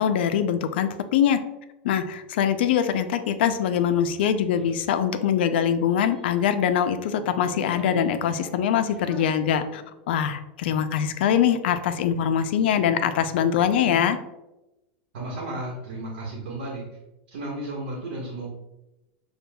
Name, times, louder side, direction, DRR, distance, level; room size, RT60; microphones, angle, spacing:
voice 1, 0.0-1.4 1.8-9.8 10.1-14.2, left 8 dB, 80° left, 9 dB, 0.4 m, -23 dB
Child speech kid speaking, 3.3-4.9 5.7-6.6 7.0-10.2, equal, 5° left, 0.7 m, -46 dB
voice 2, 15.1-16.9 17.3-18.5, right 1 dB, 85° right, -4 dB, 1.1 m, -33 dB
6.7 x 2.3 x 2.2 m, 0.97 s
supercardioid pair, 165°, 6 cm